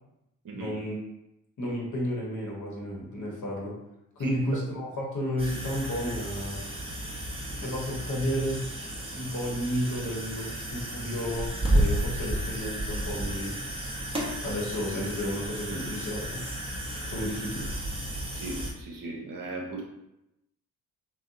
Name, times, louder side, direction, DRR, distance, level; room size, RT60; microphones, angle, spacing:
voice 1, 0.5-1.0 1.6-3.8 4.2-6.7 7.6-8.7 9.1-13.6 14.4-16.4 17.1-17.7, equal, 45° left, -2 dB, 1.0 m, -32 dB
sound 1, 5.4-18.7, right 1 dB, 15° right, 0.7 m, -32 dB
voice 2, 18.3-19.8, right 1 dB, 55° right, -1 dB, 0.8 m, -36 dB
2.6 x 2.1 x 2.5 m, 0.88 s
hypercardioid pair, 45°, 42 cm